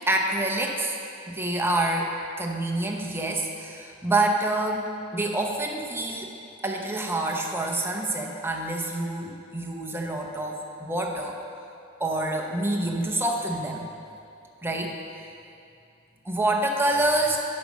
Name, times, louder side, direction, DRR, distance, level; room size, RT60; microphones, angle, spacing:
voice 1, 0.1-1.0 1.3-2.1 2.4-6.3 6.6-11.3 12.0-13.9 14.6-15.0 16.2-17.4, right 2 dB, 10° right, 1 dB, 0.8 m, -27 dB
12.0 x 5.3 x 6.2 m, 2.5 s
head